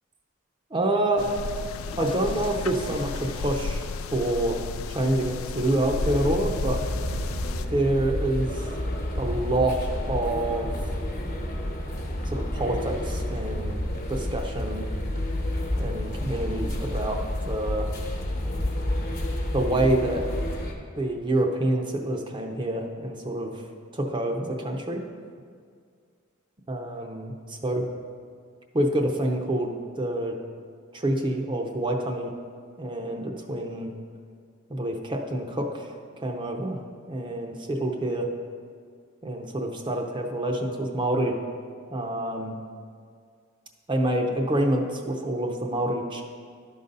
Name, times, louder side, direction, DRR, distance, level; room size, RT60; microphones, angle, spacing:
voice 1, 0.7-1.2 1.9-3.8 4.1-4.6 4.9-6.8 7.7-8.7 9.2-10.8 12.3-13.8 14.1-14.9 15.8-17.2 17.5-17.9 19.5-20.2 21.0-23.5 23.9-25.0 26.7-27.8 28.7-30.3 30.9-32.3 32.8-33.9 34.7-36.8 37.1-38.3 39.2-41.3 41.9-42.6 43.9-46.2, right 1 dB, 25° right, 2 dB, 0.6 m, -27 dB
sound 1, 1.2-7.7, left 4 dB, 90° left, 0.4 m, -33 dB
sound 2, 1.7-8.4, left 2 dB, 25° left, 0.5 m, -45 dB
sound 3, 5.8-20.7, left 1 dB, 50° left, 1.1 m, -30 dB
11.5 x 4.0 x 5.3 m, 2.1 s
head